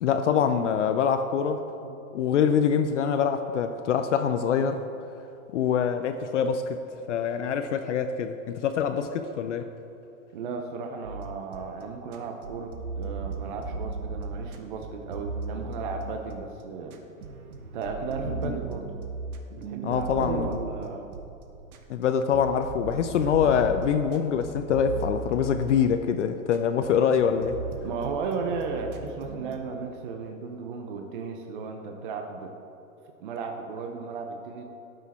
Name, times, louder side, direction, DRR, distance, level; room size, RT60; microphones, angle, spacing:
voice 1, 0.0-1.6 2.1-4.8 5.5-6.8 7.1-9.7 18.3-18.6 19.8-20.6 21.9-27.6, left 7 dB, 55° left, 8 dB, 0.6 m, -25 dB
voice 2, 10.3-17.1 17.7-18.9 19.5-21.1 27.8-32.5 33.1-34.6, right 4 dB, 35° right, 3 dB, 0.6 m, -35 dB
sound 1, 11.0-11.8 12.1-16.6 16.9-22.0 22.3-26.2 26.5-29.6, right 3 dB, 80° right, 1.2 m, -37 dB
12.5 x 6.5 x 4.1 m, 2.8 s
hypercardioid pair, 160°, 43 cm